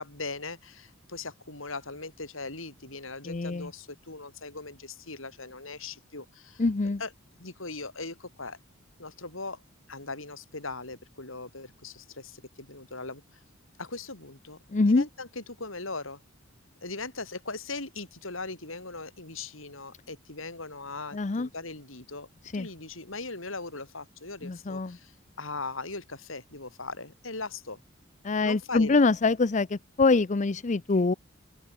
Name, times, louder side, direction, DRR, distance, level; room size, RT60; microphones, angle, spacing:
voice 1, 0.0-6.7 7.0-7.1 7.4-8.6 9.0-9.6 9.9-13.4 13.8-16.2 16.8-22.3 22.5-27.8 28.4-29.0, left 3 dB, 75° left, 7.1 m, -39 dB
voice 2, 3.3-3.7 6.6-7.0 14.7-15.0 21.1-21.5 22.5-22.7 24.4-25.0 28.2-31.1, left 3 dB, 35° left, 0.6 m, -24 dB
open air
head